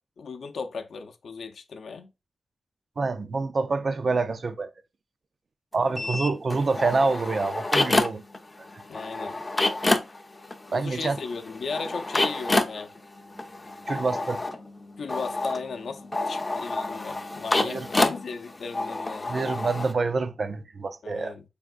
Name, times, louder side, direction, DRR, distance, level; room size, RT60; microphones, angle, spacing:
voice 1, 0.2-2.1 5.7-6.2 8.9-9.3 10.7-12.9 15.0-19.4 21.0-21.4, left 5 dB, 75° left, 0.5 m, -36 dB
voice 2, 3.0-4.7 5.7-8.2 8.6-8.7 10.7-11.2 13.9-14.4 17.6-17.9 19.3-21.4, right 3 dB, 45° right, 0.3 m, -27 dB
sound 1, 5.9-8.4 8.6-19.9, left 2 dB, 20° left, 0.4 m, -28 dB
4.4 x 3.5 x 2.3 m
wide cardioid pair, 165°, 0 cm